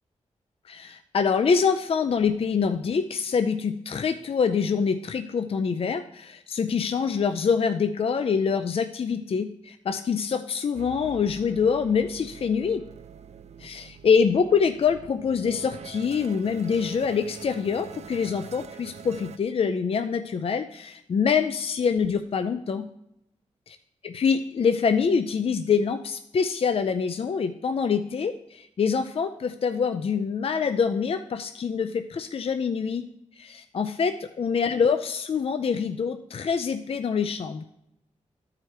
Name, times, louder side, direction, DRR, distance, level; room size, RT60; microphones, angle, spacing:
voice 1, 0.7-12.8 13.6-22.9 23.7-23.8 24.0-33.0 33.4-37.7, left 6 dB, 50° left, 8 dB, 0.5 m, -25 dB
sound 1, 10.7-19.4, right 7 dB, 60° right, 0.5 m, -45 dB
12.5 x 4.8 x 4.6 m, 0.80 s
wide cardioid pair, 95°, 12 cm